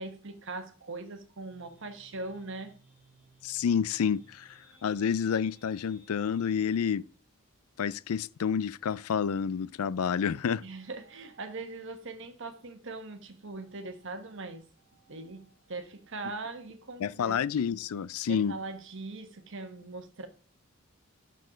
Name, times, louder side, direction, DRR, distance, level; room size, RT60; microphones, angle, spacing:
voice 1, 0.0-2.7 10.6-14.7 14.9-17.6 18.3-20.3, right 3 dB, 60° right, 1.3 m, -41 dB
sound 1, 1.5-6.9, right 2 dB, 5° right, 3.1 m, -61 dB
voice 2, 3.4-7.0 7.8-10.6 17.0-18.5, left 7 dB, 85° left, 0.4 m, -29 dB
6.6 x 6.4 x 5.0 m
head